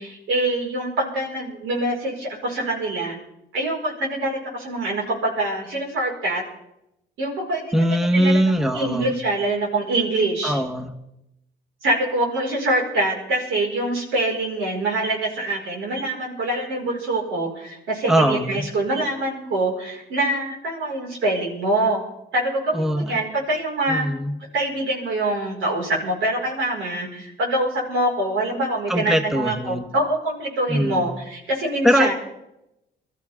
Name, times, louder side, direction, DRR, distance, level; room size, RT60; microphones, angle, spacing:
voice 1, 0.0-3.2 3.5-6.4 7.2-10.6 11.8-22.0 22.3-24.1 24.5-32.1, right 1 dB, 85° right, -1 dB, 5.0 m, -25 dB
voice 2, 7.7-9.1 10.4-11.0 18.1-18.6 22.7-23.2 23.9-24.3 28.9-29.9 30.7-31.1 31.8-32.1, equal, ahead, 5 dB, 1.1 m, -21 dB
23.0 x 13.5 x 3.6 m, 0.85 s
cardioid pair, 90°, 20 cm